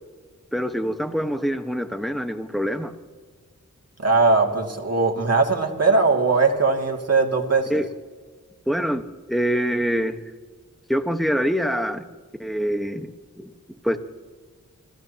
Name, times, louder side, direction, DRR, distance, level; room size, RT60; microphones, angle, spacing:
voice 1, 0.5-2.9 7.7-7.9 8.7-9.0 9.3-10.2 10.9-12.1 12.4-13.5 13.8-14.0, equal, ahead, 6 dB, 1.3 m, -25 dB
voice 2, 4.0-7.7, right 3 dB, 50° right, 2 dB, 2.5 m, -20 dB
29.0 x 16.0 x 2.9 m, 1.4 s
wide cardioid pair, 60°, 31 cm